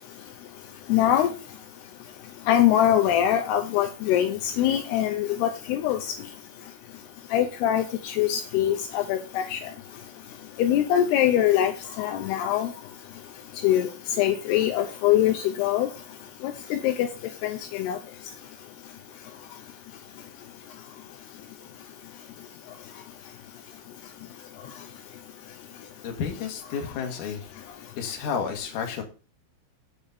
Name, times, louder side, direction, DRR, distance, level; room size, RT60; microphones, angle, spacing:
voice 1, 0.9-1.3 2.5-6.0 7.3-9.6 10.6-11.7 12.0-12.7 13.6-13.9 14.2-15.9 16.4-17.1 17.4-18.0, left 11 dB, 85° left, 6 dB, 2.4 m, -23 dB
voice 2, 26.0-27.5 28.0-29.0, left 6 dB, 60° left, 3 dB, 2.4 m, -31 dB
7.7 x 5.2 x 6.9 m, 0.34 s
omnidirectional pair, 5.6 m